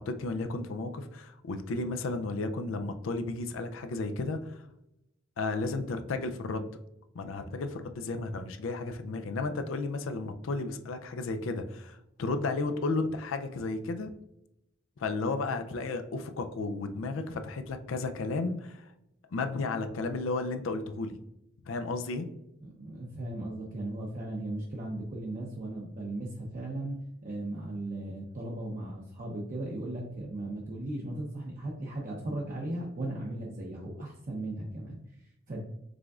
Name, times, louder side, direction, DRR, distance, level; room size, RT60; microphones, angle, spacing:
voice 1, 0.0-4.7 5.4-6.7 7.1-14.1 15.0-18.9 19.3-21.2 21.7-22.3, left 3 dB, 90° left, 7 dB, 0.4 m, -33 dB
voice 2, 22.6-27.0 27.2-35.6, right 1 dB, 45° right, -3 dB, 0.7 m, -37 dB
5.0 x 3.7 x 2.3 m, 0.84 s
head